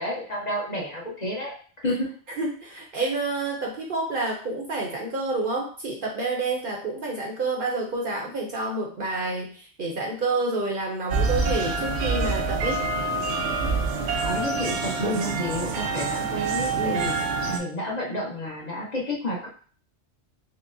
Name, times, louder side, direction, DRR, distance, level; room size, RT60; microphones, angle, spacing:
voice 1, 0.0-1.5 1.8-2.1 14.2-19.5, left 1 dB, 40° left, -4 dB, 0.9 m, -30 dB
voice 2, 2.4-12.8 15.0-15.3 16.8-17.1, right 2 dB, 55° right, -1 dB, 0.8 m, -29 dB
sound 1, 11.1-17.6, right 3 dB, 85° right, 1.0 m, -26 dB
5.6 x 2.1 x 2.6 m, 0.43 s
omnidirectional pair, 1.2 m